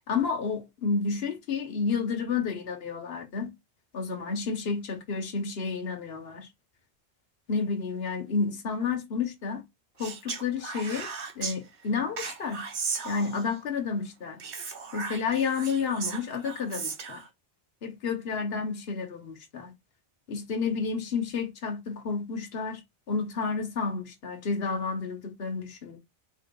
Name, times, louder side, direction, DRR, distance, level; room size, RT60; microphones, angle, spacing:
voice 1, 0.1-3.5 3.9-6.5 7.5-9.6 10.0-11.1 11.4-12.7 13.0-14.4 14.9-17.2 17.8-19.7 20.3-22.8 23.1-26.0, left 5 dB, 65° left, 1.2 m, -30 dB
Speech, 10.0-11.6 12.2-13.6 14.4-17.3, right 5 dB, 85° right, 1.2 m, -36 dB
4.5 x 2.8 x 3.7 m
omnidirectional pair, 1.1 m